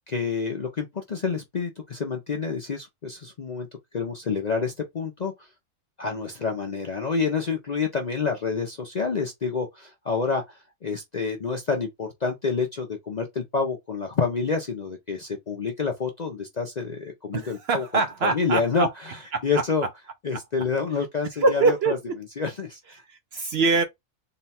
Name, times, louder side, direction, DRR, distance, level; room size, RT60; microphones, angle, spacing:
voice 1, 0.1-3.7 3.9-5.5 6.0-19.9 20.2-22.0 22.4-23.0, left 5 dB, 50° left, 0.5 m, -28 dB
voice 2, 17.3-18.9 19.3-19.4 21.4-21.9 23.1-23.8, right 3 dB, 60° right, 0.7 m, -23 dB
3.9 x 2.2 x 4.1 m
omnidirectional pair, 1.5 m